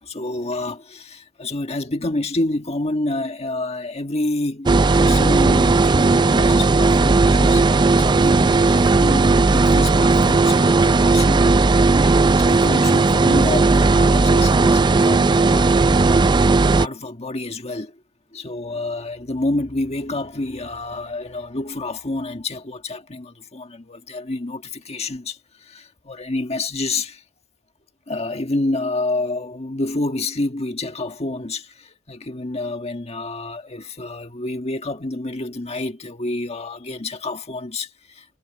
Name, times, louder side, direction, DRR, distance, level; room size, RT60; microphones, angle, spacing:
voice 1, 0.0-11.5 12.0-15.8 16.6-18.0 18.3-27.2 28.1-38.2, left 2 dB, 30° left, 1.5 m, -28 dB
sound 1, 4.7-16.9, right 3 dB, 20° right, 0.4 m, -16 dB
head